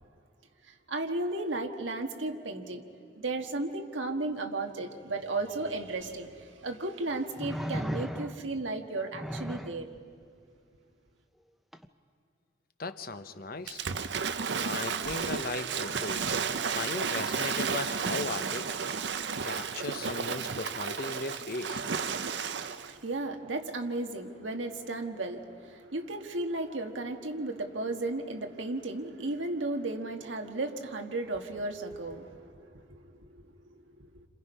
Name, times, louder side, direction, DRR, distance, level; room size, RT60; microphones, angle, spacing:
voice 1, 0.7-2.8 3.2-9.9 22.4-34.3, right 2 dB, 90° right, 4 dB, 1.6 m, -35 dB
sound 1, 6.1-6.2 7.4-8.6 9.1-9.8 11.7-11.9, equal, ahead, 0.6 m, -36 dB
voice 2, 12.8-13.8 14.6-16.4 16.7-19.0 19.4-21.9, left 3 dB, 50° left, 10 dB, 0.9 m, -37 dB
Waves surf / Splash splatter, 13.7-22.9, right 6 dB, 65° right, 0.7 m, -33 dB
29.0 x 27.0 x 5.5 m, 2.5 s
head